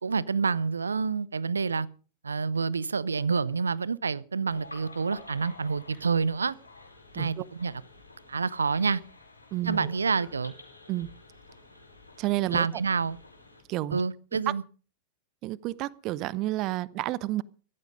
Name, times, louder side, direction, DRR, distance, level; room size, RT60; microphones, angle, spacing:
voice 1, 0.0-1.9 2.2-6.5 7.1-7.8 8.3-9.0 9.6-10.5 12.5-13.2 13.9-14.6, right 5 dB, 75° right, 22 dB, 0.7 m, -28 dB
sound 1, 4.5-13.6, left 3 dB, 85° left, 4.7 m, -49 dB
voice 2, 9.5-9.9 10.9-11.1 12.2-12.7 13.7-14.0 14.5-14.6 15.4-17.4, right 16 dB, 40° right, 23 dB, 0.7 m, -30 dB
16.5 x 14.0 x 5.3 m, 0.39 s
figure-of-eight pair, 90°, 0 cm